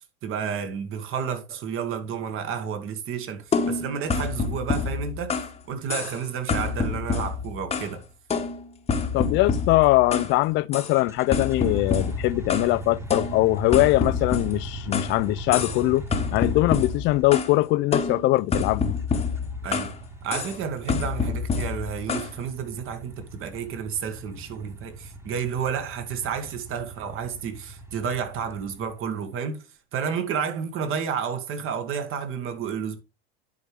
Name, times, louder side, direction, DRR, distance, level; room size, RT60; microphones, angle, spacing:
voice 1, 0.0-8.0 19.6-19.9 20.2-29.6 29.9-33.0, right 7 dB, 45° right, 1.9 m, -31 dB
sound 1, 3.5-5.6 5.9-6.2 6.5-8.0 8.3-10.3 10.7-10.9 11.3-12.7 13.1-15.2 15.5-15.8 16.1-17.5 17.9-20.0 20.3-20.6 20.9-22.3, left 5 dB, 20° left, 1.2 m, -27 dB
voice 2, 9.1-16.0 16.3-18.9, left 19 dB, 40° left, 0.4 m, -22 dB
sound 2, 10.9-17.3 19.0-29.1, right 2 dB, 10° right, 1.5 m, -39 dB
10.5 x 4.7 x 3.4 m
hypercardioid pair, 90°, 31 cm